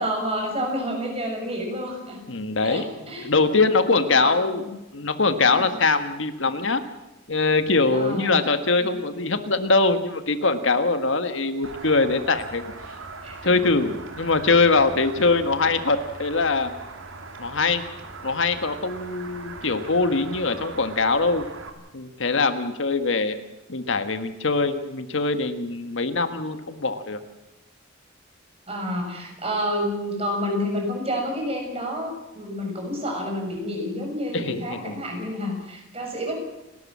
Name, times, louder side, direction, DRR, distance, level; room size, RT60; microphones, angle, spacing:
voice 1, 0.0-2.2 2.6-3.6 4.2-4.7 5.5-5.7 7.9-8.4 8.8-8.9 13.2-13.5 28.7-36.4, equal, 30° right, 2 dB, 6.8 m, -29 dB
voice 2, 2.3-2.8 3.2-4.6 4.9-6.8 7.3-12.6 13.4-16.7 17.4-17.8 18.2-21.5 21.9-23.4 23.7-27.2 34.3-35.0, left 3 dB, 70° left, 9 dB, 1.6 m, -22 dB
sound 1, 11.6-21.7, right 3 dB, 85° right, 2.9 m, -40 dB
30.0 x 13.0 x 7.5 m, 0.97 s
head